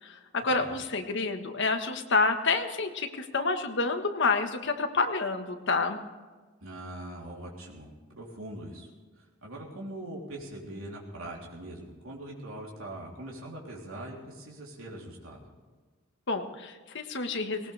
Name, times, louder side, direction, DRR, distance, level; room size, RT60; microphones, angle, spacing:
voice 1, 0.0-6.0 16.3-17.7, left 3 dB, 60° left, 6 dB, 1.5 m, -28 dB
voice 2, 6.6-8.9 9.2-15.4, right 1 dB, 85° right, -3 dB, 3.4 m, -42 dB
19.0 x 18.5 x 3.4 m, 1.4 s
head